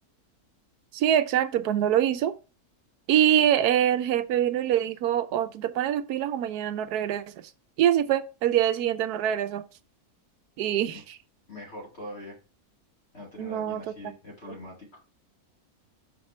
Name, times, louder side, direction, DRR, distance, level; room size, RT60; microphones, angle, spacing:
voice 1, 0.9-2.3 3.1-7.2 7.8-9.6 10.6-11.0 13.4-13.8, right 10 dB, 85° right, 1.2 m, -24 dB
voice 2, 11.5-12.4 13.1-15.0, left 1 dB, 40° left, 2.4 m, -42 dB
6.5 x 4.4 x 4.3 m
omnidirectional pair, 1.6 m